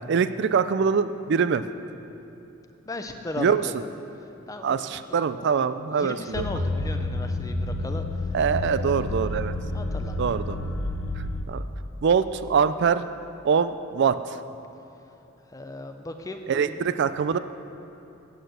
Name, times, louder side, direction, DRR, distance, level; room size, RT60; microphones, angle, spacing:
voice 1, 0.1-1.6 3.4-3.6 4.6-6.4 8.3-9.5 10.2-10.7 11.5-11.6 12.0-13.1 13.4-14.4 16.5-17.4, right 6 dB, 55° right, 13 dB, 0.3 m, -24 dB
voice 2, 2.9-3.8 4.5-4.8 5.1-5.5 5.9-8.3 8.6-9.1 9.7-10.4 15.5-16.9, left 2 dB, 15° left, 6 dB, 0.5 m, -37 dB
sound 1, 6.3-11.4, left 2 dB, 85° left, 0.7 m, -29 dB
8.8 x 7.9 x 6.6 m, 2.9 s
head